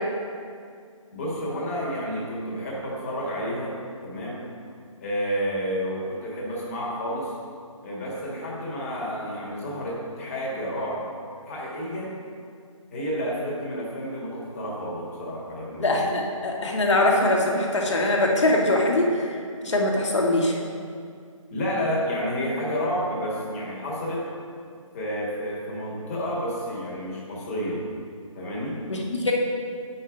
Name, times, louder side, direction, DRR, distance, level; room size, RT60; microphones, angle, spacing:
voice 1, 1.1-3.7 4.0-4.4 5.0-7.3 7.8-11.0 11.5-12.1 12.9-16.1 21.5-24.3 24.9-27.8 28.3-28.8, equal, 25° left, -5 dB, 1.7 m, -30 dB
voice 2, 15.8-19.3 19.6-20.5 28.9-29.3, left 1 dB, 60° left, -1 dB, 1.6 m, -22 dB
8.0 x 5.6 x 4.9 m, 2.3 s
figure-of-eight pair, 160°, 17 cm